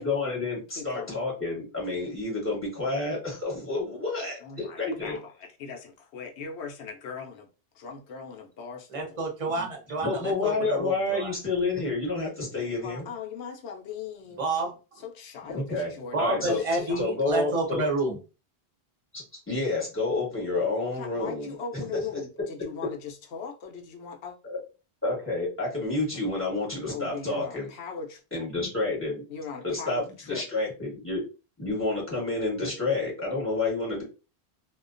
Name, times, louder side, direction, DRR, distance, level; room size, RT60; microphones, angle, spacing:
voice 1, 0.0-5.2 9.6-9.7 10.0-13.1 15.5-15.9 16.2-16.6 17.0-17.8 19.1-21.8 24.4-24.6 25.0-27.7 28.3-29.2 29.6-30.0 30.3-31.2 31.6-34.0, left 3 dB, 10° left, 1.1 m, -29 dB
voice 2, 0.7-1.2 4.4-7.5 7.7-9.2 10.3-10.6 12.5-14.4 15.0-17.1 20.8-24.4 26.9-28.2 29.3-30.4, left 6 dB, 80° left, 0.8 m, -39 dB
voice 3, 8.9-11.3 14.4-14.7 16.1-18.2, right 2 dB, 35° right, 0.8 m, -29 dB
2.3 x 2.2 x 2.5 m
omnidirectional pair, 1.1 m